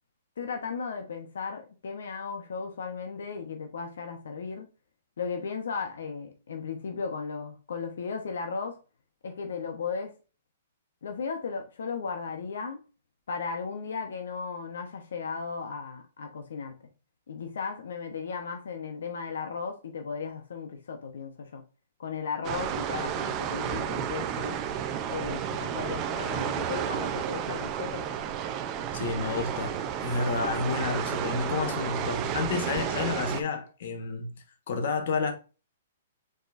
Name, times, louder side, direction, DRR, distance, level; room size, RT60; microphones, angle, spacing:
voice 1, 0.4-4.7 5.2-8.8 9.2-10.1 11.0-12.8 13.3-16.7 17.3-21.6 22.0-24.6 25.1-28.1, left 5 dB, 80° left, 0.9 m, -36 dB
sound 1, 22.4-33.4, right 9 dB, 25° right, 0.5 m, -32 dB
voice 2, 28.9-35.3, left 4 dB, 55° left, 1.2 m, -30 dB
5.2 x 4.0 x 2.5 m
hypercardioid pair, 160°, 0 cm